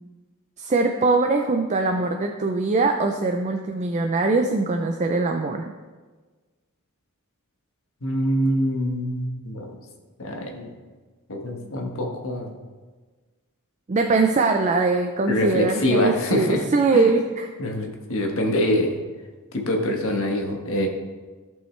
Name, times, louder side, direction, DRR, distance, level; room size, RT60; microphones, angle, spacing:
voice 1, 0.6-5.7 13.9-17.5, right 3 dB, 30° right, 4 dB, 0.4 m, -22 dB
voice 2, 8.0-9.8 10.2-10.7 11.3-12.5 15.3-16.6 16.9-17.1 17.6-19.0 19.5-20.9, left 1 dB, 65° left, 2 dB, 1.3 m, -24 dB
14.5 x 5.5 x 3.3 m, 1.3 s
head